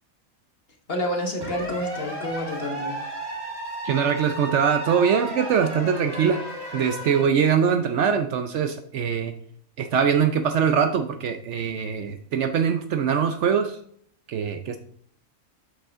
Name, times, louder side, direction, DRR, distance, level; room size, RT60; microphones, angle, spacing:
voice 1, 0.9-3.0, equal, 45° left, 1 dB, 1.5 m, -29 dB
sound 1, 1.4-7.2, right 1 dB, 15° right, 2.3 m, -34 dB
voice 2, 3.8-6.4 6.7-9.3 9.8-13.8 14.3-14.8, right 7 dB, 65° right, 7 dB, 0.8 m, -22 dB
7.5 x 5.6 x 3.5 m, 0.64 s
omnidirectional pair, 1.4 m